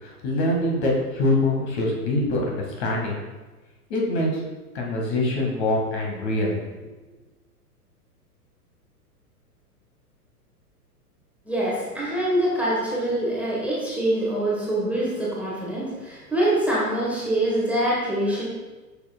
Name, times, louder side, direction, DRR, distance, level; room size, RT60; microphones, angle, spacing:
voice 1, 0.0-3.2 3.9-4.4 4.7-6.6, left 1 dB, 45° left, -1 dB, 1.7 m, -24 dB
voice 2, 11.5-18.4, right 1 dB, 5° right, -7 dB, 1.2 m, -24 dB
8.3 x 5.8 x 2.2 m, 1.2 s
figure-of-eight pair, 100°, 47 cm